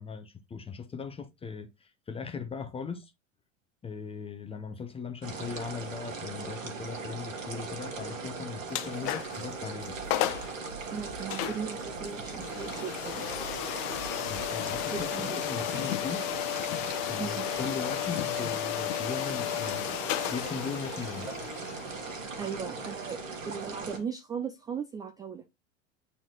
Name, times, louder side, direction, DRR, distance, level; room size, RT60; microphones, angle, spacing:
voice 1, 0.0-3.1 3.8-10.0 14.3-16.3 17.1-20.0 20.3-21.3, left 5 dB, 15° left, 0.7 m, -39 dB
sound 1, 5.2-24.0, right 4 dB, 80° right, 1.8 m, -39 dB
sound 2, 8.7-9.5 9.8-9.9 10.1-10.5 11.3-24.0, left 13 dB, 45° left, 0.8 m, -34 dB
sound 3, 9.8-15.0, right 2 dB, 65° right, 2.2 m, -49 dB
voice 2, 10.9-13.3 14.9-15.6 17.2-17.5 18.3-18.4 22.4-23.2 23.5-25.4, right 6 dB, 10° right, 0.3 m, -37 dB
8.7 x 4.2 x 2.9 m
figure-of-eight pair, 90°, 38 cm